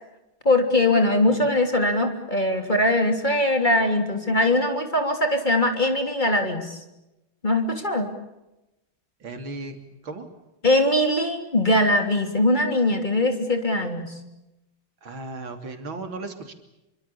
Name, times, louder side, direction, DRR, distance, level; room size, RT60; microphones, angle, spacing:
voice 1, 0.4-6.8 7.4-8.1 10.6-14.1, left 1 dB, 20° left, 5 dB, 3.3 m, -21 dB
voice 2, 9.2-9.8 10.0-10.3 15.0-16.5, right 2 dB, 70° right, 6 dB, 3.8 m, -35 dB
27.5 x 24.5 x 7.1 m, 0.95 s
omnidirectional pair, 2.3 m